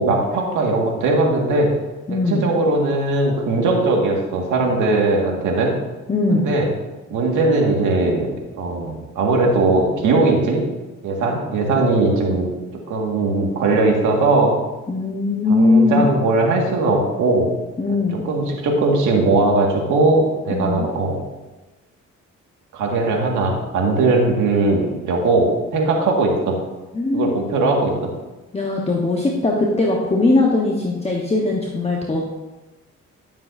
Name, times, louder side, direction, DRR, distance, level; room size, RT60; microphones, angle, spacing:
voice 1, 0.0-1.7 2.1-5.7 6.3-6.7 7.1-8.3 8.6-10.6 11.0-12.5 12.9-14.5 15.5-17.5 18.2-21.2 22.7-26.6 27.1-28.1, right 2 dB, 85° right, 0 dB, 2.0 m, -19 dB
voice 2, 2.1-2.4 6.1-6.5 14.9-16.1 17.8-18.2 20.5-20.9 26.9-27.4 28.5-32.2, left 2 dB, 20° left, -2 dB, 1.3 m, -19 dB
12.5 x 7.4 x 2.7 m, 1.1 s
cardioid pair, 90°, 30 cm